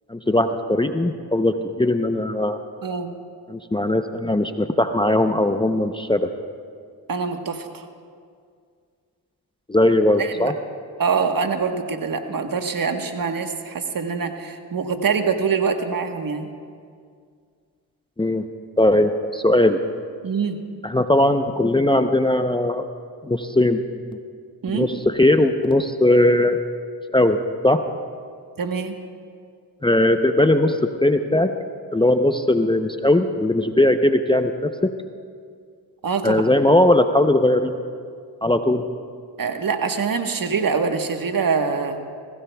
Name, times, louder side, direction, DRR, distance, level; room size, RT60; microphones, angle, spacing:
voice 1, 0.1-2.6 3.5-6.3 9.7-10.5 18.2-18.4 18.8-19.8 20.8-22.9 23.2-23.8 24.7-26.6 27.1-27.4 27.6-27.8 29.8-31.5 31.9-34.9 36.2-37.7 38.4-38.8, left 1 dB, 10° left, 7 dB, 0.7 m, -19 dB
voice 2, 2.8-3.1 7.1-7.8 10.2-10.5 11.0-16.5 20.2-20.6 24.6-24.9 28.6-29.0 36.0-36.4 39.4-42.0, right 5 dB, 50° right, 6 dB, 1.3 m, -24 dB
21.0 x 17.0 x 2.3 m, 2.1 s
supercardioid pair, 50°, 43 cm